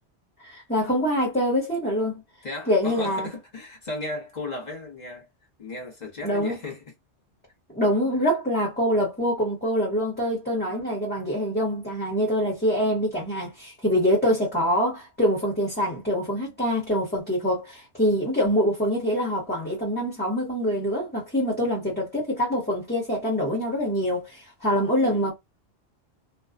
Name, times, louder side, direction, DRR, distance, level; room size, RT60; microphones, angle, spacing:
voice 1, 0.4-2.2 2.7-3.3 6.2-6.6 7.7-25.3, equal, 10° left, 1.0 m, -25 dB
voice 2, 2.4-5.3 5.6-6.8 8.1-8.2 24.9-25.3, left 2 dB, 40° left, 1.1 m, -35 dB
2.5 x 2.3 x 2.4 m
omnidirectional pair, 1.2 m